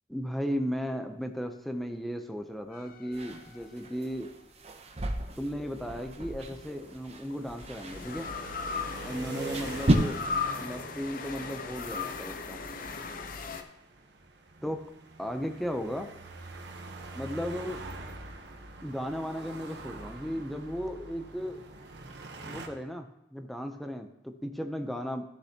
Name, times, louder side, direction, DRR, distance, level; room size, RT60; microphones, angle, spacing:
voice 1, 0.1-4.3 5.4-8.3 9.0-10.2 10.6-12.6 14.6-14.9 15.2-16.1 17.1-17.8 18.8-21.6 22.4-25.2, equal, ahead, 6 dB, 0.5 m, -35 dB
sound 1, 2.7-4.2 6.1-13.6, left 4 dB, 50° left, 0.6 m, -38 dB
sound 2, 3.1-9.9, right 1 dB, 35° right, 0.7 m, -34 dB
sound 3, 7.7-22.7, right 3 dB, 65° right, 1.0 m, -45 dB
14.0 x 6.7 x 2.8 m, 0.83 s
head